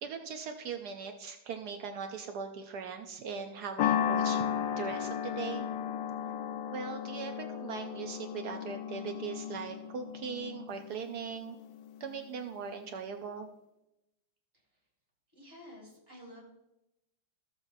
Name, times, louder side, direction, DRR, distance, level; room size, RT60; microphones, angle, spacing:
voice 1, 0.0-4.5 4.8-5.7 6.7-11.6 12.0-13.5, right 6 dB, 70° right, 5 dB, 1.0 m, -40 dB
sound 1, 3.8-12.3, left 9 dB, 75° left, 1.3 m, -35 dB
voice 2, 15.3-16.4, left 1 dB, 10° right, -3 dB, 3.8 m, -51 dB
14.0 x 7.3 x 2.6 m, 0.89 s
omnidirectional pair, 2.2 m